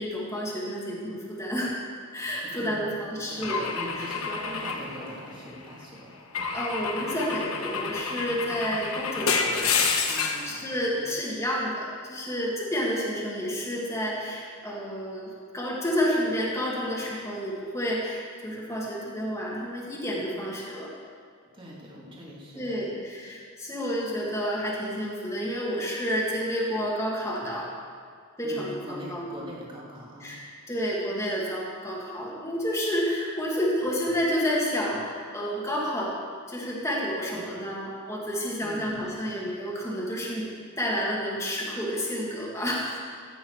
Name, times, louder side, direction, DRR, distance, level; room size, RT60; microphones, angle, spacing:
voice 1, 0.0-1.8 2.1-3.7 4.0-4.1 6.5-9.7 10.3-20.9 22.5-27.7 28.4-29.3 30.2-36.1 36.5-40.5 40.8-43.0, equal, 15° left, -5 dB, 2.0 m, -30 dB
voice 2, 2.3-6.1 10.0-10.7 21.5-23.0 28.4-30.3 38.6-39.3, equal, 25° right, -5 dB, 2.4 m, -42 dB
Car / Engine / Glass, 3.4-5.6 6.3-10.5, left 5 dB, 70° left, 1.1 m, -29 dB
15.5 x 8.5 x 4.7 m, 2.1 s
head